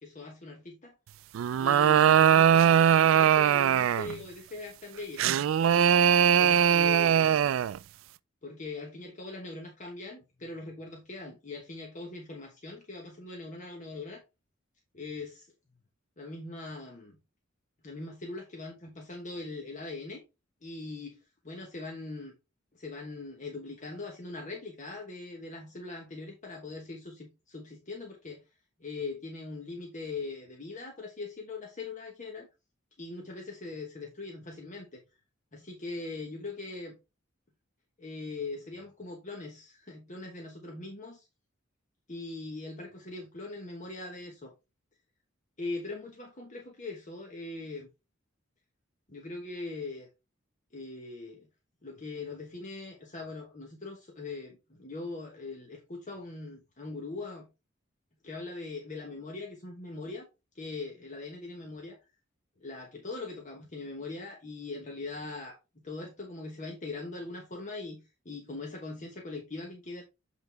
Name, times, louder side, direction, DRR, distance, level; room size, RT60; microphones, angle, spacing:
voice 1, 0.0-1.0 1.6-5.2 6.4-7.5 8.4-14.2 14.9-15.5 16.2-17.2 17.8-20.2 20.6-21.2 21.4-22.3 22.7-28.4 28.8-32.5 33.0-35.0 35.5-36.9 38.0-41.3 42.1-44.5 45.6-47.9 49.1-50.1 50.7-51.5 51.8-57.5 58.2-60.3 60.5-62.0 62.6-65.6 65.8-70.0, left 3 dB, 40° left, 1.2 m, -41 dB
sound 1, 1.3-4.2 5.2-7.8, right 9 dB, 80° right, 0.3 m, -21 dB
8.0 x 3.9 x 3.5 m
head